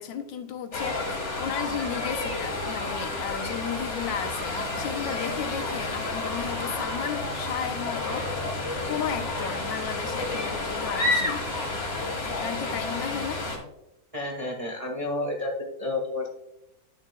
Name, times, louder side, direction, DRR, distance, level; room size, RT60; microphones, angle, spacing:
voice 1, 0.0-8.4 8.9-11.5 12.2-13.4, left 8 dB, 75° left, 1.4 m, -34 dB
sound 1, 0.7-13.6, left 2 dB, 40° left, 1.8 m, -30 dB
voice 2, 14.1-16.3, left 2 dB, 25° right, 0.8 m, -30 dB
11.0 x 6.6 x 2.3 m
omnidirectional pair, 2.1 m